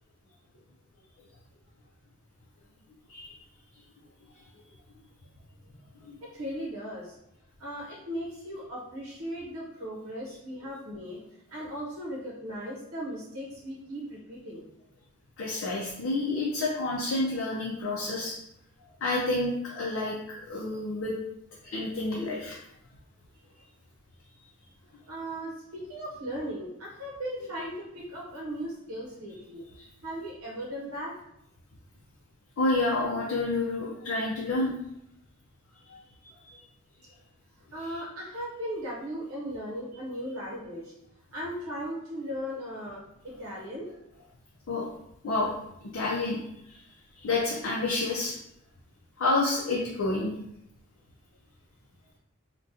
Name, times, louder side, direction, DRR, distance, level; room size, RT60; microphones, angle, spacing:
voice 1, 6.2-7.1 7.6-11.2 11.5-14.6 21.6-21.7 23.5-23.6 24.3-24.5 25.1-29.6 30.0-31.1 37.7-40.9 41.3-43.9, equal, 80° right, -4 dB, 0.7 m, -37 dB
voice 2, 15.4-18.3 19.0-20.2 20.5-21.1 21.7-22.6 32.6-34.7 35.9-36.0 36.4-36.6 44.7-44.9 45.2-45.5 45.9-46.4 46.7-46.8 47.2-48.4 49.2-50.3, left 2 dB, 70° left, -4 dB, 0.5 m, -29 dB
2.7 x 2.2 x 3.6 m, 0.80 s
head